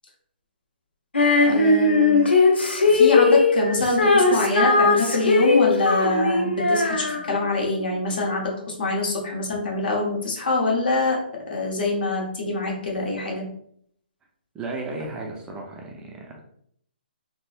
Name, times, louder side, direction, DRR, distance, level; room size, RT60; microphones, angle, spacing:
Female singing, 1.1-7.6, left 3 dB, 90° left, 0.6 m, -19 dB
voice 1, 1.4-2.2 2.8-11.2 11.5-13.4, left 2 dB, 60° left, -1 dB, 1.0 m, -24 dB
voice 2, 14.5-16.4, right 3 dB, 15° right, 0 dB, 0.4 m, -34 dB
3.5 x 2.0 x 2.5 m, 0.66 s
figure-of-eight pair, 135°, 6 cm